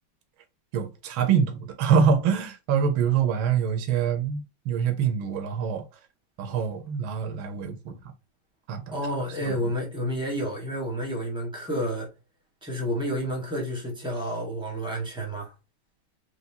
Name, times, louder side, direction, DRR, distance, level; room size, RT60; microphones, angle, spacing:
voice 1, 0.7-5.8 6.4-7.9 8.7-8.8 9.5-9.6, right 7 dB, 75° right, 1.6 m, -25 dB
voice 2, 8.9-12.1 12.6-15.5, equal, 5° right, 1.2 m, -30 dB
4.6 x 3.1 x 2.8 m
omnidirectional pair, 2.3 m